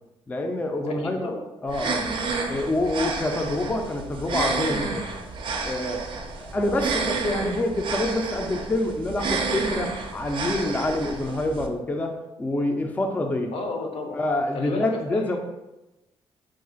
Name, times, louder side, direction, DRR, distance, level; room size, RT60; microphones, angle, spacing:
voice 1, 0.3-1.3 1.6-2.1 2.5-5.1 5.6-6.1 6.4-13.5 14.1-15.4, left 1 dB, 15° left, 3 dB, 0.3 m, -26 dB
voice 2, 0.9-1.5 6.6-6.8 13.5-14.2 14.5-15.4, left 3 dB, 65° left, 3 dB, 0.6 m, -33 dB
sound 1, 1.7-11.7, right 4 dB, 50° right, 0.4 m, -30 dB
2.4 x 2.4 x 3.8 m, 1.0 s
cardioid pair, 75°, 11 cm